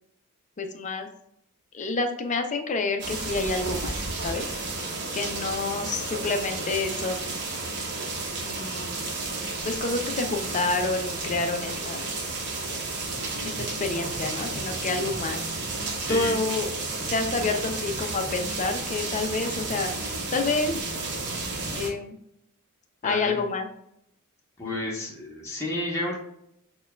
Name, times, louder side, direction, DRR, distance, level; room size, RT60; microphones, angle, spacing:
voice 1, 0.6-1.1 1.7-3.9 4.2-4.4 5.1-7.4 8.4-9.1 9.6-12.0 13.4-13.5 13.8-15.4 16.1-16.7 17.1-19.9 20.3-20.8 21.7-22.2 23.0-23.7, left 3 dB, 35° left, 5 dB, 0.5 m, -28 dB
sound 1, 3.0-21.9, right 3 dB, 50° right, 0.9 m, -32 dB
voice 2, 15.9-16.4 17.0-17.1 17.4-17.5 23.0-23.4 24.6-26.2, left 1 dB, 15° left, -4 dB, 0.9 m, -31 dB
6.4 x 2.3 x 2.2 m, 0.75 s
head